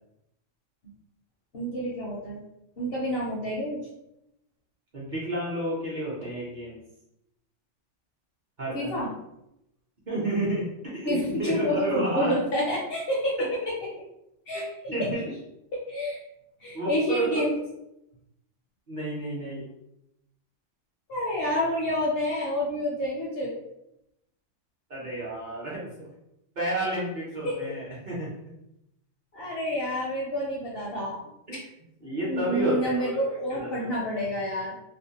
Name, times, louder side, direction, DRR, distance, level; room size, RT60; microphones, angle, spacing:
voice 1, 1.5-2.4 2.8-3.8 8.7-9.1 11.1-14.0 14.5-14.7 15.7-16.2 16.6-17.5 21.1-23.6 27.4-27.6 29.3-31.2 31.5-31.6 32.3-34.7, equal, 60° left, -4 dB, 0.6 m, -28 dB
voice 2, 4.9-6.8 8.6-9.0 10.1-11.1 11.4-12.3 14.5-14.6 14.9-15.2 16.7-17.4 18.9-19.6 24.9-26.1 26.6-28.3 31.5-31.6 32.0-33.2 33.6-34.0, right 1 dB, 45° right, -7 dB, 0.7 m, -30 dB
2.5 x 2.1 x 2.7 m, 0.84 s
omnidirectional pair, 1.4 m